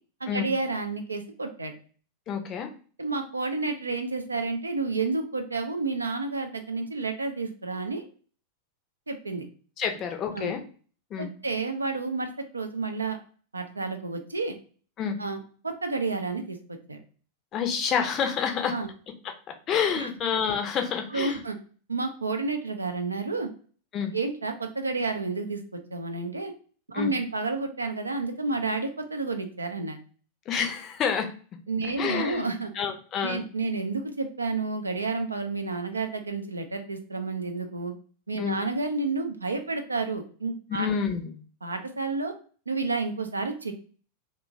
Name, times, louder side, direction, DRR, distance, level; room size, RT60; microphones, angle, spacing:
voice 1, 0.2-1.8 3.0-8.0 9.1-9.5 10.3-10.5 11.2-13.2 13.5-14.6 15.2-16.6 16.9-17.0 18.7-18.9 19.9-20.1 21.1-21.6 21.9-23.5 24.1-25.6 25.9-26.5 26.9-30.0 31.7-32.7 33.2-37.9 38.3-40.9 41.6-42.3 42.7-43.7, right 3 dB, 80° right, 6 dB, 0.4 m, -30 dB
voice 2, 2.3-2.7 9.8-10.6 11.1-11.3 15.0-15.2 17.5-18.7 19.7-21.4 23.9-24.1 26.9-27.1 30.5-31.3 32.0-32.4 32.7-33.4 38.4-38.6 40.7-41.4, left 7 dB, 30° left, 5 dB, 0.5 m, -28 dB
2.9 x 2.2 x 2.5 m, 0.41 s
figure-of-eight pair, 90°, 0 cm